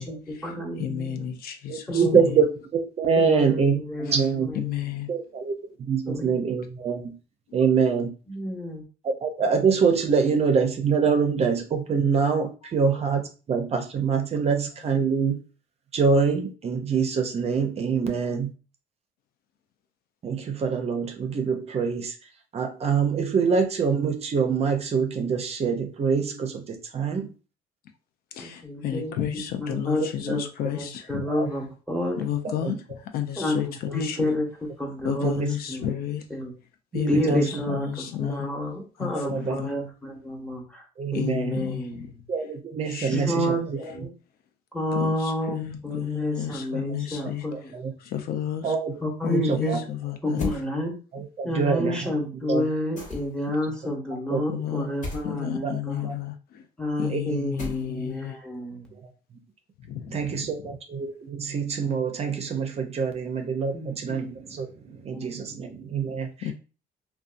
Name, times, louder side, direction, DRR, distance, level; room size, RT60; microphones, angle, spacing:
voice 1, 0.0-1.2 1.9-2.3 3.2-4.8 6.1-6.3 8.3-8.8 28.4-32.2 33.4-34.5 34.8-35.9 36.3-36.5 37.1-40.8 41.1-42.2 43.1-44.1 44.7-47.7 49.0-49.8 50.2-50.9 51.4-56.1 56.8-58.9 63.7-64.3 65.1-65.4, left 1 dB, 5° left, 0 dB, 0.9 m, -30 dB
voice 2, 0.8-2.0 4.5-5.1 28.3-31.2 32.2-32.8 33.1-34.3 35.0-36.2 36.9-38.5 39.0-39.7 41.1-42.1 42.9-43.5 44.9-47.4 48.0-48.7 49.2-50.5 54.5-54.9 55.2-56.6 57.0-58.4 59.8-60.3 66.4-66.5, left 10 dB, 65° left, 6 dB, 0.4 m, -32 dB
voice 3, 1.7-4.5 5.1-7.1 7.5-8.1 9.0-15.4 15.9-18.5 20.2-22.2 22.5-27.3 30.6-30.7 31.3-31.5 32.6-32.8 35.1-35.5 36.9-37.8 39.2-39.6 41.0-41.6 42.3-44.1 47.5-47.9 48.6-48.9 49.3-49.8 51.1-52.1 52.5-52.6 54.3-54.4 54.7-54.8 55.6-55.7 56.0-56.1 57.1-57.4 58.9-59.0 60.1-66.5, right 5 dB, 40° right, 5 dB, 0.5 m, -25 dB
sound 1, 50.4-50.6 53.0-53.5 55.0-55.3 57.6-58.1, left 2 dB, 45° left, 1.0 m, -34 dB
2.6 x 2.2 x 2.4 m, 0.34 s
cardioid pair, 110°, 17 cm